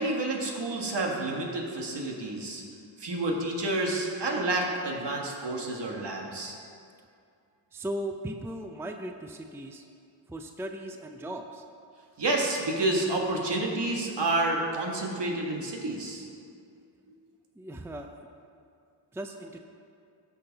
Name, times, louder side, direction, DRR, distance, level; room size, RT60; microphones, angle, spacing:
voice 1, 0.0-2.6 3.0-6.6 12.2-16.2, right 2 dB, 65° right, 0 dB, 1.6 m, -29 dB
voice 2, 7.7-9.9 10.3-11.6 17.6-18.7 19.1-19.6, right 1 dB, 5° right, 4 dB, 0.5 m, -38 dB
14.5 x 5.8 x 4.0 m, 2.4 s
cardioid pair, 75°, 45 cm